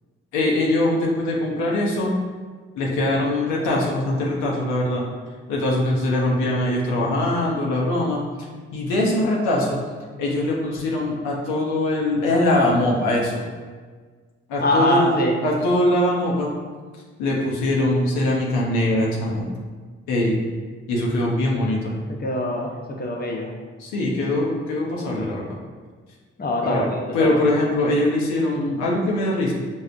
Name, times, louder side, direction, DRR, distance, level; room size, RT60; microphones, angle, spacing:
voice 1, 0.3-2.1 2.7-5.0 5.5-8.2 8.7-9.8 10.2-13.4 14.5-15.1 15.4-16.5 17.2-19.5 20.1-20.4 20.9-21.9 23.8-25.6 26.6-26.9 27.1-29.5, left 1 dB, 85° left, -3 dB, 0.6 m, -22 dB
voice 2, 14.6-15.4 22.2-22.7 23.0-23.5 26.4-27.4, left 1 dB, 30° left, 0 dB, 0.7 m, -23 dB
5.2 x 2.0 x 2.4 m, 1.5 s
hypercardioid pair, 40°, 30 cm